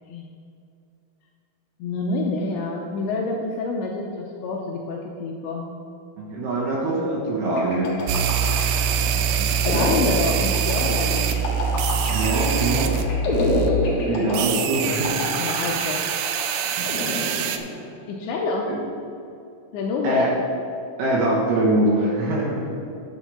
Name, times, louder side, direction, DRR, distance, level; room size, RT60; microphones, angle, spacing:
voice 1, 1.8-5.7 9.6-11.3 15.4-16.2 18.1-18.7 19.7-20.3, left 3 dB, 85° left, 0 dB, 2.6 m, -27 dB
voice 2, 6.2-7.9 9.1-9.9 12.1-13.1 14.0-15.3 16.8-16.9 18.7-18.8 20.0-20.3 21.0-22.8, right 1 dB, 70° right, -4 dB, 2.6 m, -24 dB
sound 1, 7.6-18.0, left 2 dB, 65° left, 1.8 m, -29 dB
sound 2, 8.1-13.1 13.3-13.7 14.3-17.6, right 8 dB, 85° right, 3.1 m, -24 dB
10.5 x 4.6 x 6.9 m, 2.7 s
omnidirectional pair, 5.8 m